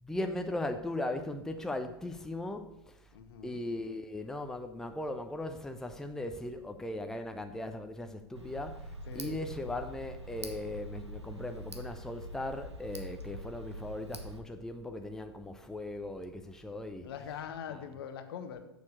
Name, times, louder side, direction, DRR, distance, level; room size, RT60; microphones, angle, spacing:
voice 1, 0.0-3.1 3.4-17.1 17.7-17.8, left 1 dB, 5° left, 0.6 m, -38 dB
voice 2, 3.1-3.6 9.1-9.4 17.0-18.6, left 8 dB, 60° left, 1.0 m, -42 dB
Tick, 8.4-14.4, right 1 dB, 90° right, 1.1 m, -44 dB
7.1 x 6.6 x 6.4 m
figure-of-eight pair, 90°, 14 cm